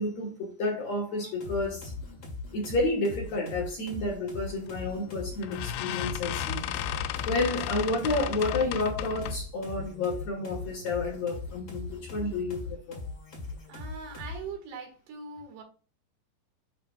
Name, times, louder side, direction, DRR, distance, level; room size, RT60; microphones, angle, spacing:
voice 1, 0.0-1.9 2.5-6.7 7.3-13.0, left 2 dB, 60° left, 1.9 m, -30 dB
sound 1, 1.4-14.5, left 3 dB, 35° left, 1.8 m, -40 dB
sound 2, 4.7-4.9 5.4-9.5, left 10 dB, 85° left, 2.4 m, -34 dB
voice 2, 13.7-15.6, right 5 dB, 90° right, 4.0 m, -41 dB
11.0 x 3.8 x 2.3 m
omnidirectional pair, 4.6 m